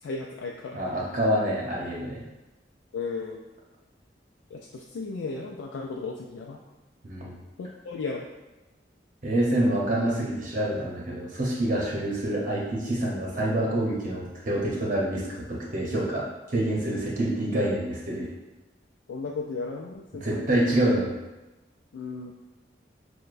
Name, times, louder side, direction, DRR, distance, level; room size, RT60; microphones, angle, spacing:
voice 1, 0.0-0.8 2.9-3.4 4.5-6.6 7.6-8.3 19.1-20.5 21.9-22.3, left 4 dB, 85° left, 0 dB, 0.3 m, -35 dB
voice 2, 0.7-2.2 7.0-7.3 9.2-15.2 15.5-16.2 16.5-18.3 20.1-21.1, right 1 dB, 45° right, -4 dB, 0.9 m, -26 dB
6.4 x 2.2 x 2.5 m, 1.1 s
head